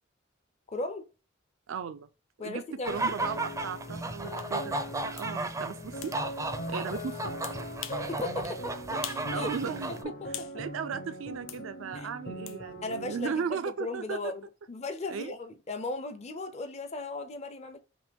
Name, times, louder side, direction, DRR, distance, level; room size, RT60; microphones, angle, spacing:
voice 1, 0.7-1.1 2.4-3.1 8.1-8.7 9.3-9.6 9.9-10.5 11.9-12.1 12.8-17.8, left 2 dB, 35° left, 0.5 m, -37 dB
voice 2, 1.7-2.1 2.4-4.7 5.0-6.1 6.7-7.6 9.3-10.1 10.5-14.2 15.1-15.3, right 6 dB, 75° right, 0.4 m, -36 dB
sound 1, 2.8-10.0, right 2 dB, 15° right, 0.4 m, -35 dB
sound 2, 3.2-13.5, equal, 55° left, 0.9 m, -41 dB
sound 3, 4.4-4.5 5.2-5.3 6.0-6.2 7.4-8.1 8.4-8.6 9.0-9.3 9.6-10.6 11.5-11.6 12.5-12.6, left 12 dB, 80° left, 0.5 m, -42 dB
5.8 x 2.2 x 3.4 m
head